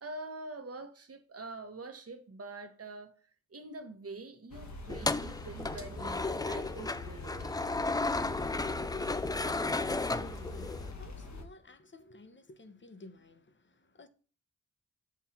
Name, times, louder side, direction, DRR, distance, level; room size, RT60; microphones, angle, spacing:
voice 1, 0.0-3.1 3.5-7.4, right 2 dB, 45° right, 1.2 m, -45 dB
sound 1, 4.5-11.4, left 2 dB, 60° left, 1.3 m, -45 dB
sound 2, 4.9-10.9, left 3 dB, 10° left, 0.3 m, -34 dB
voice 2, 9.5-14.1, left 2 dB, 35° left, 0.8 m, -53 dB
7.2 x 2.7 x 5.7 m
cardioid pair, 50°, 32 cm